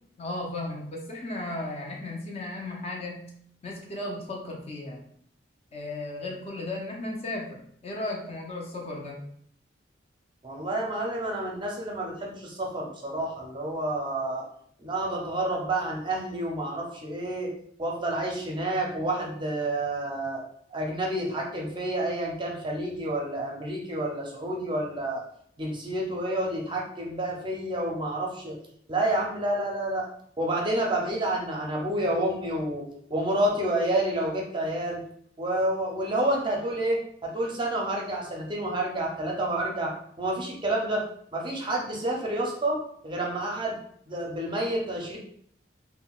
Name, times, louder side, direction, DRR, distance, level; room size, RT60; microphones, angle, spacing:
voice 1, 0.2-3.3 3.6-5.0 5.7-9.2, left 2 dB, 35° left, 0 dB, 0.6 m, -35 dB
voice 2, 10.4-14.4 14.8-17.5 17.8-20.4 20.7-25.2 25.6-28.6 28.9-30.1 30.4-32.8 33.1-35.0 35.4-39.9 40.2-41.0 41.3-43.8 44.1-45.2, right 1 dB, 25° right, -1 dB, 0.5 m, -29 dB
3.7 x 2.1 x 2.3 m, 0.65 s
head